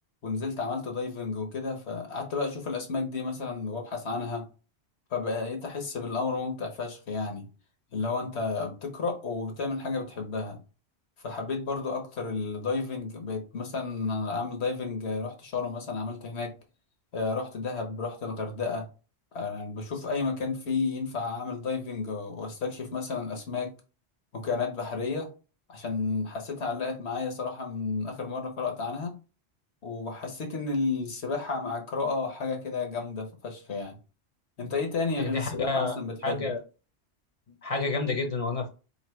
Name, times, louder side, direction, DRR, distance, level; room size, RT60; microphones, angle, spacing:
voice 1, 0.2-4.5 5.1-7.5 7.9-10.6 11.2-16.5 17.1-18.9 19.3-23.7 24.3-25.3 25.7-29.1 29.8-34.0 34.6-36.5, left 4 dB, 75° left, 1.3 m, -32 dB
voice 2, 35.2-36.0 36.2-36.6 37.5-38.7, left 3 dB, 35° left, 0.7 m, -29 dB
3.2 x 2.7 x 4.4 m
omnidirectional pair, 1.1 m